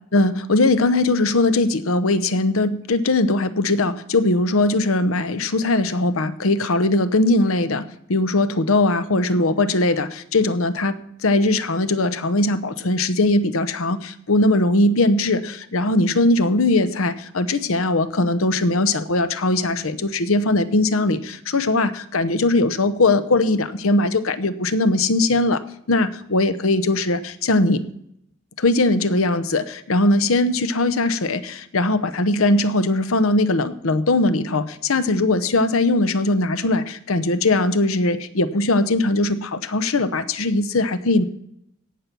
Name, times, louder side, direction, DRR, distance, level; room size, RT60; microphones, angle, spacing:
voice 1, 0.1-25.6 25.9-27.9 28.6-41.2, left 2 dB, 75° left, 13 dB, 0.9 m, -20 dB
17.0 x 6.0 x 6.9 m, 0.73 s
head